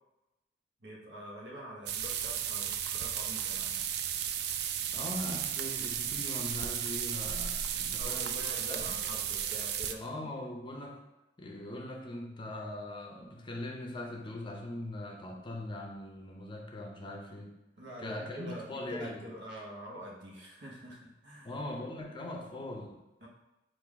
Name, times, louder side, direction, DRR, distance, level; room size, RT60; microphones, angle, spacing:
voice 1, 0.8-3.8 8.0-10.3 17.8-21.6 23.2-23.3, equal, 80° right, -2 dB, 1.1 m, -45 dB
sound 1, 1.9-9.9, right 9 dB, 60° right, 0.3 m, -34 dB
voice 2, 4.9-8.3 8.7-8.8 10.0-11.0 11.4-17.6 18.0-19.3 21.4-23.0, left 1 dB, 25° left, 1 dB, 0.5 m, -41 dB
3.7 x 2.5 x 4.6 m, 0.96 s
head